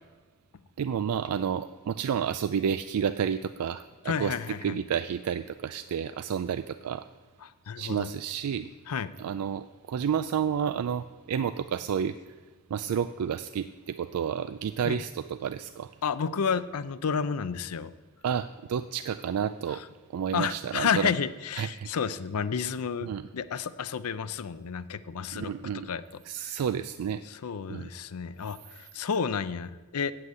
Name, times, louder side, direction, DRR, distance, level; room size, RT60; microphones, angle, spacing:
voice 1, 0.8-4.3 4.6-7.1 7.8-8.7 9.2-12.2 12.7-15.9 18.2-19.8 20.1-21.1 21.6-21.9 23.0-23.3 25.3-25.9 26.3-27.2 27.7-27.9, right 7 dB, 90° right, 12 dB, 0.3 m, -30 dB
voice 2, 4.1-4.8 7.4-8.1 8.9-9.1 14.8-15.0 16.0-17.9 19.7-19.8 20.3-26.6 27.3-30.1, left 6 dB, 80° left, 14 dB, 0.5 m, -31 dB
7.9 x 7.7 x 8.3 m, 1.4 s
head